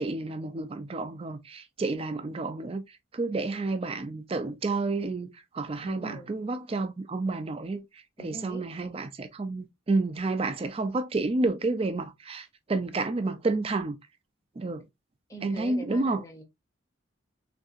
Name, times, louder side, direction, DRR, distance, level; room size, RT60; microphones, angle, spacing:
voice 1, 0.0-14.0 14.6-14.8 15.4-16.2, right 3 dB, 25° right, 0.3 m, -30 dB
voice 2, 5.8-6.3 8.2-8.6 15.3-16.4, right 1 dB, 15° left, 0.7 m, -42 dB
3.6 x 2.6 x 2.3 m
head